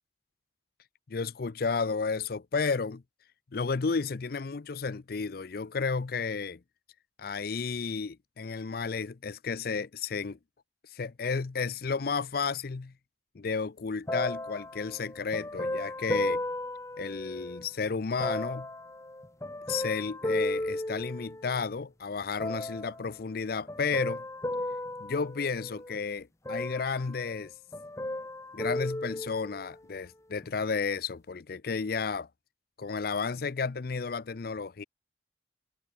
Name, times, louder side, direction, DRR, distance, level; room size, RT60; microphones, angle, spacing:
voice 1, 1.1-3.0 3.5-6.6 7.2-10.4 10.9-12.9 13.3-16.4 17.0-18.7 19.7-24.2 25.0-27.5 28.5-32.3 32.8-34.8, left 5 dB, 55° left, 0.5 m, -32 dB
sound 1, 14.1-17.7 18.2-21.7 22.4-23.1 23.7-26.0 26.4-27.5 27.7-29.8 30.4-30.5, left 1 dB, 15° left, 0.9 m, -35 dB
head